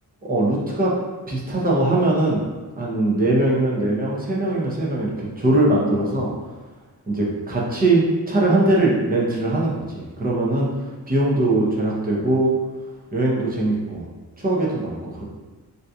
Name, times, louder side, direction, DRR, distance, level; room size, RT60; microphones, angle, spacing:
voice 1, 0.2-0.9 1.3-2.4 2.8-6.3 7.1-12.5 13.1-14.1 14.4-15.2, right 2 dB, 25° right, -4 dB, 0.6 m, -21 dB
3.7 x 2.7 x 2.3 m, 1.3 s
wide cardioid pair, 160°, 39 cm